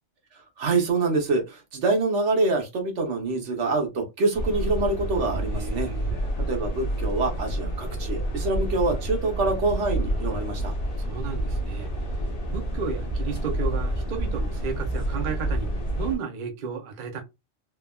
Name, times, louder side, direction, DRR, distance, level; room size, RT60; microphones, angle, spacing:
voice 1, 0.6-5.9 6.5-10.7, right 3 dB, 70° right, 1.1 m, -25 dB
sound 1, 4.3-16.2, right 1 dB, 40° left, 0.7 m, -29 dB
voice 2, 5.5-6.2 11.0-11.9 12.5-15.7 16.0-17.2, right 6 dB, 55° right, 0.6 m, -33 dB
3.4 x 2.1 x 2.2 m
omnidirectional pair, 1.3 m